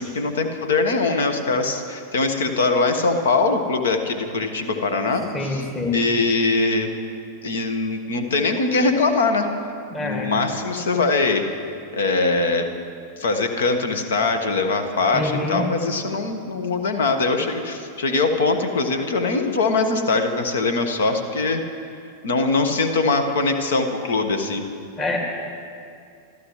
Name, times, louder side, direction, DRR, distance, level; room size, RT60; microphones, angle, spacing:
voice 1, 0.0-5.7 5.9-6.9 7.4-9.5 10.0-11.5 11.9-12.7 13.2-21.6 22.2-24.6, left 3 dB, 60° left, 7 dB, 1.4 m, -22 dB
voice 2, 5.3-6.0 9.9-10.3 15.1-15.7 25.0-25.2, left 3 dB, 20° left, 1 dB, 2.2 m, -26 dB
26.5 x 13.5 x 3.2 m, 2.4 s
figure-of-eight pair, 90°, 0 cm